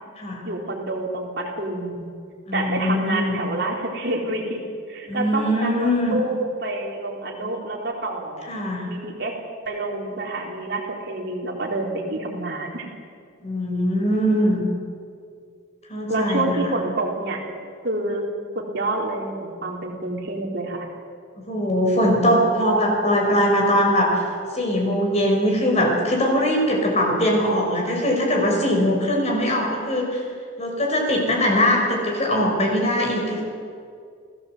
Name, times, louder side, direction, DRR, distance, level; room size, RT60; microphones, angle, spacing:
voice 1, 0.4-2.1 2.5-4.6 4.9-8.5 8.9-9.3 9.7-12.9 16.1-17.4 17.8-18.3 18.6-20.9, right 2 dB, 55° right, 0 dB, 3.8 m, -28 dB
voice 2, 2.5-3.4 5.1-6.1 8.5-8.9 13.4-14.6 15.9-16.6 21.4-24.2 24.5-30.2 30.6-33.4, equal, 35° left, 1 dB, 5.5 m, -21 dB
30.0 x 16.5 x 7.9 m, 2.3 s
head